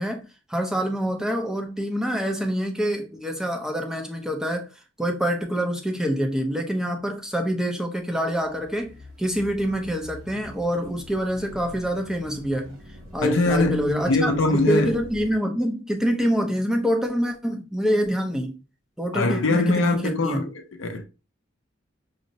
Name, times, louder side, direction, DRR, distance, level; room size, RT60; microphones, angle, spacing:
voice 1, 0.0-4.7 5.0-12.8 13.1-18.6 19.0-20.4, equal, 5° right, 0.5 m, -26 dB
sound 1, 8.3-15.3, left 1 dB, 80° right, 1.2 m, -44 dB
voice 2, 13.2-15.0 19.1-21.1, left 2 dB, 65° left, 0.5 m, -23 dB
5.1 x 2.0 x 2.7 m
head